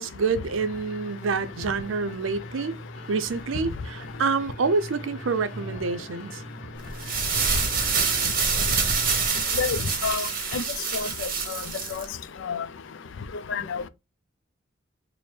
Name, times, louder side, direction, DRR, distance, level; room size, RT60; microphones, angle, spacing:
voice 1, 0.0-2.8 3.1-6.4, right 4 dB, 80° right, 0.5 m, -27 dB
sound 1, 0.6-9.3, equal, 35° left, 0.8 m, -41 dB
sound 2, 6.9-12.0, right 5 dB, 45° right, 1.0 m, -26 dB
voice 2, 9.6-10.3 10.5-10.6 10.9-11.6 12.0-12.1 12.5-12.6 13.5-13.8, left 5 dB, 70° left, 0.4 m, -28 dB
4.3 x 2.0 x 3.2 m
head